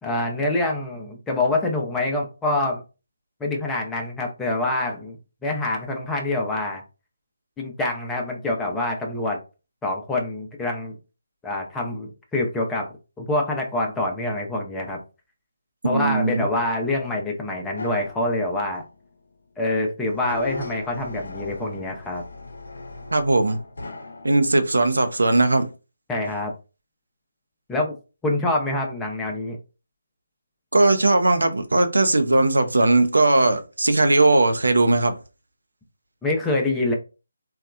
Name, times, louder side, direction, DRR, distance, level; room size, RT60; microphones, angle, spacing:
voice 1, 0.0-2.8 3.4-5.2 5.4-6.8 7.6-9.4 9.8-10.9 11.4-15.0 15.8-18.8 19.6-22.2 26.1-26.5 27.7-28.0 28.2-29.6 36.2-36.9, left 2 dB, 5° left, 0.5 m, -26 dB
voice 2, 15.8-16.5 23.1-23.6 24.2-25.7 30.7-35.2, right 2 dB, 75° right, 0.6 m, -19 dB
sound 1, 17.8-19.0 20.1-24.5, left 3 dB, 65° left, 0.6 m, -38 dB
2.8 x 2.2 x 2.3 m
figure-of-eight pair, 155°, 0 cm